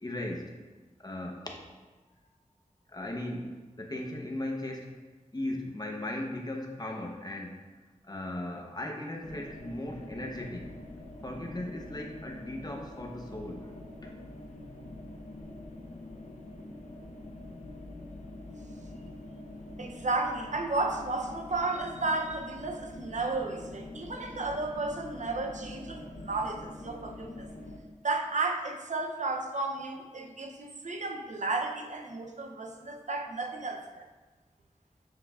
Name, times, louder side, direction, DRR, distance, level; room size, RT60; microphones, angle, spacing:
voice 1, 0.0-0.5 1.0-1.5 2.9-4.9 5.3-7.6 8.0-10.7 11.2-13.7 14.0-14.3, left 1 dB, 30° left, 1 dB, 0.9 m, -37 dB
sound 1, 9.2-27.8, left 2 dB, 75° left, 0.8 m, -45 dB
voice 2, 19.8-27.5 28.0-34.0, right 3 dB, 70° right, 3 dB, 0.6 m, -33 dB
7.4 x 6.2 x 2.4 m, 1.3 s
wide cardioid pair, 65°, 13 cm